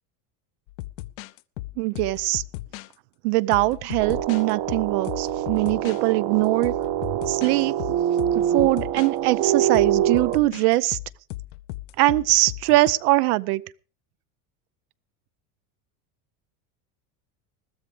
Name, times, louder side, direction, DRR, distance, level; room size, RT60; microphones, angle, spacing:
sound 1, 0.7-2.9 3.5-6.0 6.6-7.5 7.8-9.1 9.7-12.9, left 18 dB, 70° left, 0.7 m, -36 dB
voice 1, 1.8-2.4 3.2-6.7 7.3-7.8 8.3-11.0 12.0-13.6, right 19 dB, 85° right, 16 dB, 0.8 m, -22 dB
sound 2, 4.0-10.4, right 11 dB, 55° right, 1.1 m, -25 dB
21.0 x 13.5 x 3.4 m, 0.36 s
supercardioid pair, 145°, 45 cm